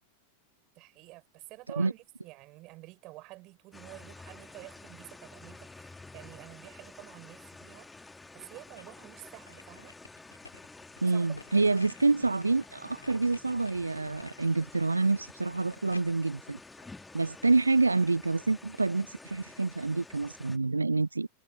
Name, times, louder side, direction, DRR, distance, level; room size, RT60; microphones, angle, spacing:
voice 1, 0.8-9.9 11.1-11.2 11.6-11.7, right 21 dB, 40° right, 5.9 m, -49 dB
sound 1, 3.7-20.6, left 3 dB, 10° left, 2.1 m, -50 dB
sound 2, 8.2-9.0 9.5-17.5 18.0-18.1, left 3 dB, 80° left, 3.6 m, -53 dB
voice 2, 11.0-16.6 17.1-21.3, right 3 dB, 80° right, 0.3 m, -27 dB
figure-of-eight pair, 90°, 0 cm